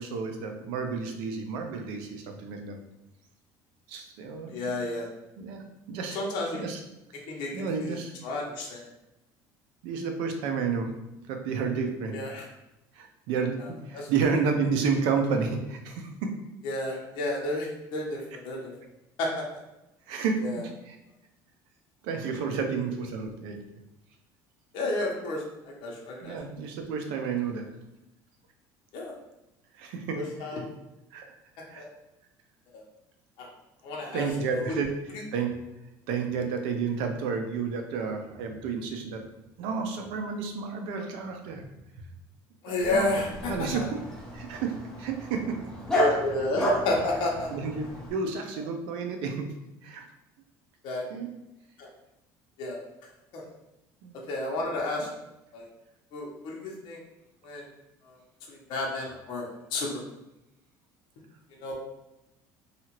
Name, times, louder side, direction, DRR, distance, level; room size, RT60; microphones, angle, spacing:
voice 1, 0.0-2.8 3.9-4.9 5.4-6.2 6.5-6.8 7.5-8.1 9.8-10.9 11.3-12.2 13.0-13.6 13.9-16.1 20.1-21.0 22.0-23.6 26.2-27.7 29.8-30.5 31.1-31.3 31.7-31.8 34.1-34.9 35.3-35.5 36.1-39.2 39.6-41.7 42.9-44.0 44.3-44.7 45.0-45.6 47.5-47.8 48.1-49.5 49.8-50.0 51.1-51.3 54.0-54.1, right 5 dB, 80° right, 4 dB, 0.5 m, -31 dB
voice 2, 4.5-5.1 6.1-6.7 7.3-7.5 7.8-7.9 8.2-8.8 12.1-12.4 13.9-14.1 16.6-18.7 19.2-19.4 20.4-20.6 24.7-25.4 25.8-26.3 28.9-29.1 30.1-30.6 31.8-31.9 32.7-32.8 33.4-33.5 33.8-34.6 42.6-43.8 45.9-47.5 50.8-51.0 51.8-51.9 52.6-52.8 53.3-53.4 54.3-55.1 55.5-55.6 56.1-57.0 57.4-57.6 58.1-58.2 58.5-60.0 61.6-61.7, left 2 dB, 65° left, -2 dB, 0.8 m, -31 dB
Dog, 42.8-48.1, equal, 5° left, 0.7 m, -32 dB
2.8 x 2.4 x 2.9 m, 0.91 s
cardioid pair, 135°, 9 cm